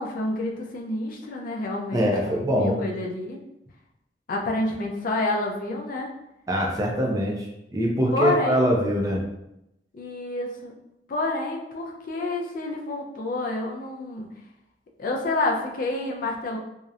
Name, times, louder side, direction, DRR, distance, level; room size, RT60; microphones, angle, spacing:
voice 1, 0.0-3.4 4.3-6.1 8.1-8.7 9.9-10.7 11.1-14.3 15.0-16.6, left 2 dB, 50° left, 0 dB, 0.4 m, -28 dB
voice 2, 1.9-2.8 6.5-9.2, equal, 20° right, -1 dB, 0.4 m, -23 dB
2.7 x 2.0 x 2.4 m, 0.85 s
head